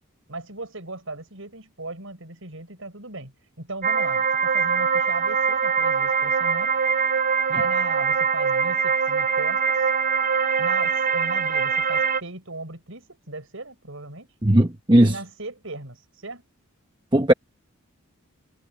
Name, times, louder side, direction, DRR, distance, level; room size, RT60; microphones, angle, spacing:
voice 1, 0.3-6.7 7.5-9.8 10.6-14.3 15.0-16.4, right 2 dB, 70° right, 6.4 m, -37 dB
sound 1, 3.8-12.2, right 5 dB, 40° right, 0.6 m, -23 dB
voice 2, 14.4-15.1 17.1-17.3, right 1 dB, 20° right, 1.1 m, -17 dB
head